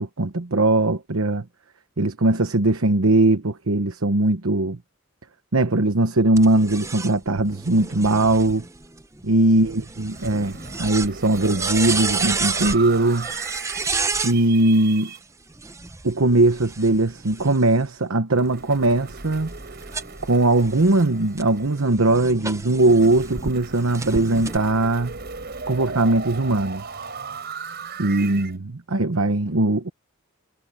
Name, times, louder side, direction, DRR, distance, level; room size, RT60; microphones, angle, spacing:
voice 1, 0.0-1.4 2.0-4.8 5.5-8.6 9.2-13.3 14.2-15.1 16.0-19.5 20.2-25.1 25.7-27.1 28.0-29.9, right 2 dB, 70° right, 1.1 m, -20 dB
sound 1, 6.4-14.4 15.5-17.9 18.5-23.5 23.9-24.6, right 4 dB, 15° right, 0.7 m, -31 dB
sound 2, 10.1-15.2 18.3-22.1 22.8-28.5, right 4 dB, 50° right, 4.9 m, -37 dB
head